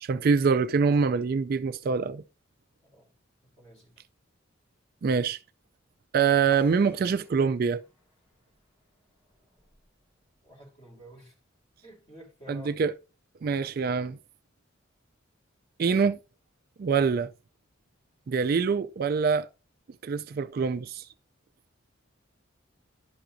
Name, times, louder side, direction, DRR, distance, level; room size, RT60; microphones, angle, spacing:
voice 1, 0.0-2.2 5.0-5.4 6.1-7.8 12.5-12.9 13.4-14.2 15.8-16.2 16.8-17.3 18.3-19.5 20.0-21.0, right 5 dB, 50° right, 0.3 m, -25 dB
voice 2, 2.8-3.1 3.4-4.0 10.4-11.3 11.8-12.8 13.7-14.0, equal, 30° left, 3.5 m, -51 dB
sound 1, 6.5-10.1, left 2 dB, 15° left, 3.8 m, -56 dB
11.0 x 5.8 x 2.6 m
head